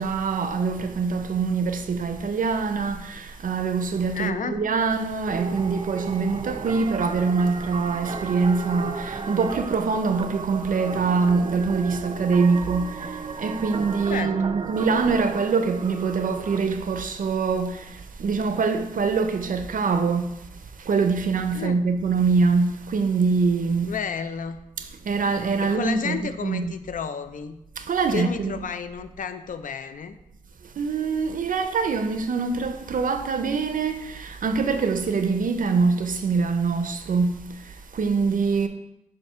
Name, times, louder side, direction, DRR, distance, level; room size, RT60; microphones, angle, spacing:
voice 1, 0.0-20.4 20.8-23.9 24.8-26.7 27.8-28.6 30.8-37.5 37.9-38.7, right 4 dB, 85° right, 0.5 m, -24 dB
voice 2, 4.1-4.6 14.1-14.4 21.5-21.8 23.8-24.6 25.6-27.6 28.1-30.2, left 6 dB, 75° left, 0.4 m, -32 dB
sound 1, 5.3-16.6, right 5 dB, 40° right, 0.3 m, -35 dB
7.3 x 2.7 x 5.5 m
wide cardioid pair, 115°, 14 cm